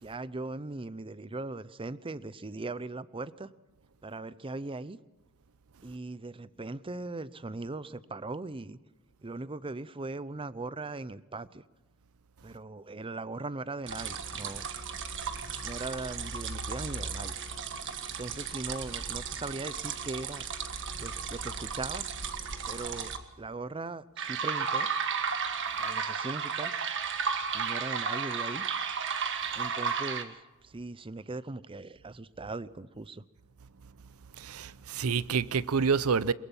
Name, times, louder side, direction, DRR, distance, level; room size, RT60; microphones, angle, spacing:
voice 1, 0.0-3.5 4.0-5.0 5.8-8.8 9.2-11.6 12.4-14.6 15.6-17.3 18.2-20.5 21.0-22.1 22.7-24.9 25.8-26.7 27.5-28.6 29.5-33.2, right 2 dB, 25° right, 0.6 m, -39 dB
sound 1, 13.9-23.2 24.2-30.2, right 6 dB, 60° right, 1.6 m, -34 dB
voice 2, 34.4-36.3, right 5 dB, 75° right, 0.6 m, -28 dB
22.5 x 22.0 x 5.5 m
head